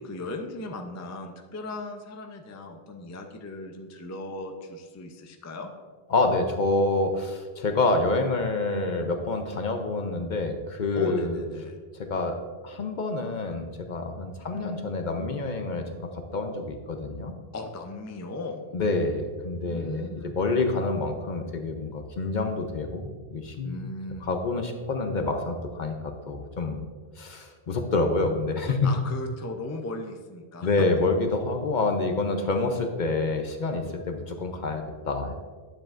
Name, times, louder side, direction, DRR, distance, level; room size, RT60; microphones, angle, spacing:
voice 1, 0.0-5.7 10.9-11.9 14.5-14.8 17.5-18.7 19.6-20.4 23.6-24.4 28.8-30.7, left 2 dB, 20° left, 3 dB, 0.4 m, -37 dB
voice 2, 6.1-11.4 12.1-12.4 12.6-17.3 18.7-20.1 20.3-23.8 24.2-26.8 27.2-28.9 30.6-35.3, left 3 dB, 55° left, 5 dB, 0.7 m, -27 dB
9.8 x 7.4 x 2.5 m, 1.5 s
omnidirectional pair, 1.1 m